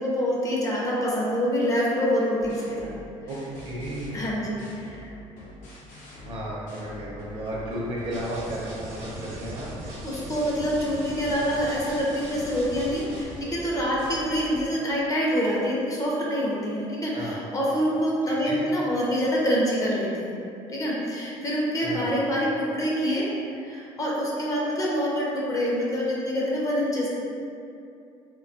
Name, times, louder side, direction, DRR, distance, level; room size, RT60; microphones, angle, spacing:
voice 1, 0.0-3.0 4.1-5.1 10.0-20.3 20.7-23.3 23.6-27.2, equal, 25° left, -5 dB, 0.5 m, -26 dB
sound 1, 2.4-8.6 9.0-14.7, left 1 dB, 80° left, 0.6 m, -44 dB
voice 2, 3.3-4.5 6.2-9.7 17.1-17.4 18.3-18.6 21.8-22.1, right 1 dB, 40° right, -5 dB, 0.6 m, -34 dB
sound 2, 8.1-13.4, right 1 dB, 80° right, 0.8 m, -40 dB
2.3 x 2.2 x 2.6 m, 2.6 s
cardioid pair, 115°, 13 cm